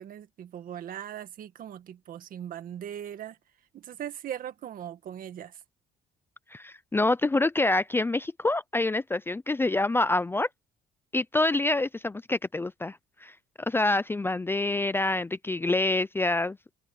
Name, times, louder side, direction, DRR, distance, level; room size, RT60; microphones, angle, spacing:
voice 1, 0.0-3.4 3.7-5.6, right 10 dB, 55° right, 2.0 m, -39 dB
voice 2, 6.5-10.5 11.1-13.3 13.7-16.6, left 2 dB, 15° left, 0.5 m, -26 dB
cardioid pair, 110°, 17 cm